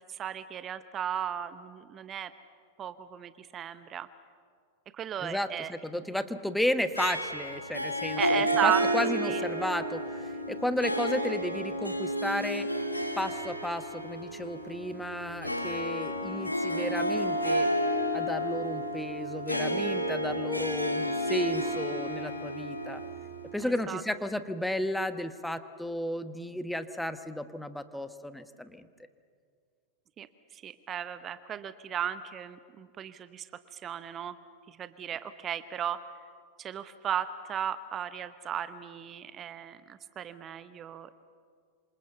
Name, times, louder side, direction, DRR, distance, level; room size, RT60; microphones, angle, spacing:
voice 1, 0.0-2.3 2.8-4.1 4.9-5.7 8.2-9.4 23.6-24.0 30.2-30.3 30.5-33.5 33.7-34.3 34.7-36.0 36.6-41.1, right 9 dB, 25° right, 13 dB, 0.9 m, -35 dB
voice 2, 5.2-12.7 13.2-17.7 18.1-23.0 23.5-28.9, left 1 dB, 5° left, 11 dB, 1.1 m, -33 dB
Harp, 7.0-23.7, equal, 85° left, 2.4 m, -31 dB
27.0 x 27.0 x 7.1 m, 2.1 s
figure-of-eight pair, 90°, 0 cm